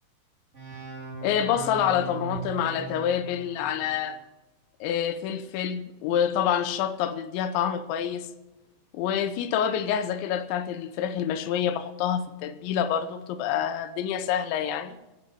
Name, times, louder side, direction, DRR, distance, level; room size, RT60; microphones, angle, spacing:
sound 1, 0.5-4.2, right 4 dB, 20° right, 2.0 m, -39 dB
voice 1, 1.2-4.2 4.8-8.3 8.9-15.0, left 9 dB, 80° left, 3.1 m, -27 dB
15.0 x 9.1 x 7.7 m
omnidirectional pair, 5.3 m